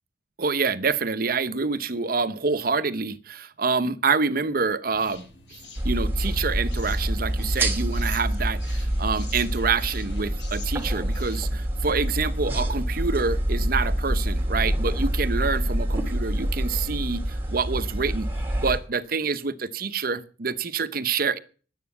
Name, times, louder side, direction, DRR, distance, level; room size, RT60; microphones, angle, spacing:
voice 1, 0.4-5.3 5.8-18.3 18.6-21.4, right 4 dB, 55° right, 0.9 m, -27 dB
sound 1, 4.9-18.9, left 2 dB, 70° left, 7.5 m, -48 dB
sound 2, 5.8-18.8, right 1 dB, 15° right, 2.4 m, -26 dB
11.5 x 9.2 x 7.1 m
head